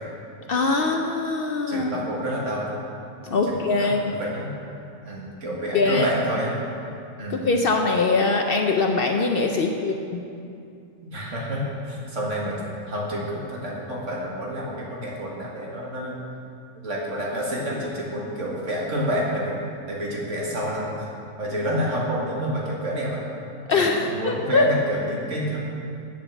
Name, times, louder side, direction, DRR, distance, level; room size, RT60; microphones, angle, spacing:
voice 1, 0.5-1.9 3.2-4.1 5.7-6.1 7.3-10.2 23.7-24.7, left 3 dB, 55° left, 3 dB, 0.7 m, -22 dB
voice 2, 1.7-2.8 3.4-4.5 5.0-6.5 7.2-7.5 11.1-12.6 12.9-16.2 16.8-20.9 21.4-23.2 23.7-25.6, equal, 65° right, -4 dB, 2.1 m, -28 dB
7.7 x 7.3 x 7.0 m, 2.6 s
omnidirectional pair, 1.3 m